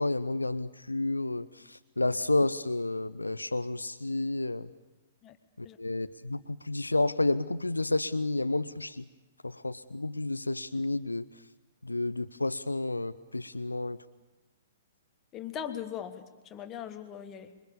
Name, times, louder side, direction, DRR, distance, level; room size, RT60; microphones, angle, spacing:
voice 1, 0.0-1.5 2.0-4.7 5.6-9.0 9.4-11.2 11.8-14.0, left 2 dB, 80° left, 11 dB, 0.7 m, -30 dB
voice 2, 15.3-16.2 16.5-17.5, left 9 dB, 25° left, 8 dB, 1.6 m, -39 dB
27.0 x 23.0 x 7.1 m, 1.1 s
figure-of-eight pair, 115°, 0 cm